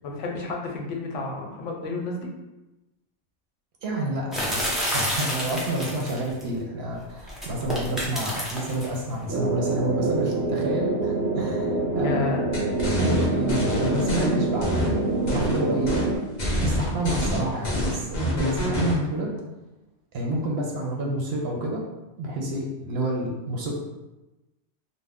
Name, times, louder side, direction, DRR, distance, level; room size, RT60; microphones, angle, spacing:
voice 1, 0.0-2.3 12.0-12.4, left 3 dB, 85° left, 0 dB, 0.9 m, -31 dB
voice 2, 3.8-11.7 11.9-12.3 13.0-15.0 15.3-15.9 16.6-19.3 20.1-21.8 22.2-23.7, right 1 dB, 65° right, -1 dB, 0.7 m, -29 dB
Rocks falling over rocks over a steep hill like a cliff, 4.3-6.4 7.3-9.0, equal, ahead, 0.3 m, -29 dB
sound 1, 9.3-16.2, right 2 dB, 20° right, 0.9 m, -26 dB
sound 2, 12.5-14.3 14.6-15.6 15.9-16.1 16.4-19.0, equal, 45° left, 0.7 m, -26 dB
2.4 x 2.1 x 3.4 m, 1.0 s
omnidirectional pair, 1.2 m